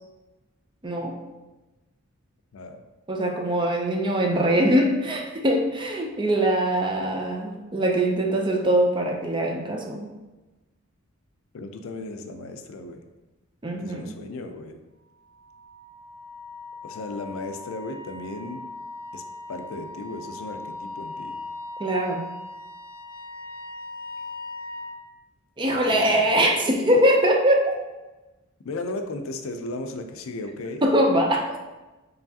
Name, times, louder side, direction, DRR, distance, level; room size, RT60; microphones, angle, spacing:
voice 1, 0.8-1.2 3.1-10.1 13.6-14.2 21.8-22.3 25.6-27.7 30.8-31.6, right 1 dB, 20° right, 1 dB, 0.5 m, -22 dB
voice 2, 2.5-2.8 11.5-13.0 13.8-14.8 16.8-18.6 19.1-19.2 19.5-21.4 25.7-26.2 28.6-30.9, left 2 dB, 70° left, 6 dB, 0.4 m, -35 dB
Wind instrument woodwind instrument, 15.5-25.0, left 2 dB, 25° left, 0.6 m, -39 dB
4.6 x 3.2 x 2.7 m, 1.1 s
head